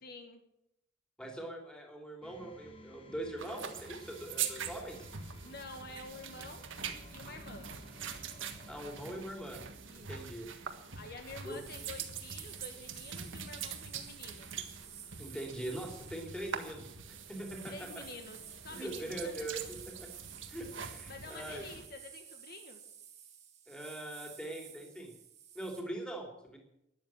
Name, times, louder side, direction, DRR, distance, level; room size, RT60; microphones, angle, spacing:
voice 1, 0.0-0.4 5.4-6.7 7.1-7.7 9.9-10.3 10.9-14.5 17.7-18.4 18.6-19.5 21.1-22.8, left 3 dB, 50° left, 5 dB, 1.4 m, -49 dB
voice 2, 1.2-5.1 8.7-9.6 10.0-10.5 11.4-11.6 15.2-17.9 18.7-20.1 20.5-21.7 23.7-25.1 25.5-26.6, right 1 dB, 5° left, 1 dB, 3.0 m, -42 dB
sound 1, 2.2-9.2, left 1 dB, 25° left, 1.6 m, -56 dB
sound 2, 3.4-21.9, right 7 dB, 70° right, 1.6 m, -44 dB
sound 3, 11.5-25.8, right 8 dB, 35° right, 2.0 m, -53 dB
12.5 x 10.5 x 8.9 m, 0.82 s
head